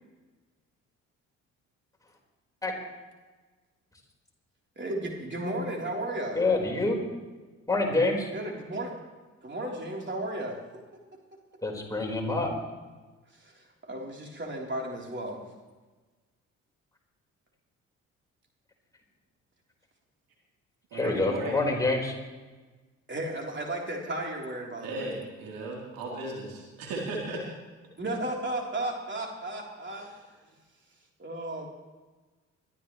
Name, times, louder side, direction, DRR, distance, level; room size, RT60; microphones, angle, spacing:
voice 1, 4.8-6.4 8.3-8.9 9.4-10.8 13.3-15.4 23.1-25.1 28.0-30.1 31.2-31.7, right 1 dB, 30° right, 0 dB, 3.6 m, -34 dB
voice 2, 6.3-7.0 7.7-8.3 11.6-12.5 20.9-22.1, left 2 dB, 10° left, -2 dB, 4.5 m, -26 dB
voice 3, 20.9-21.6 24.8-27.4 29.9-30.1, right 2 dB, 65° right, -2 dB, 3.6 m, -36 dB
22.0 x 12.5 x 3.2 m, 1.3 s
hypercardioid pair, 45°, 37 cm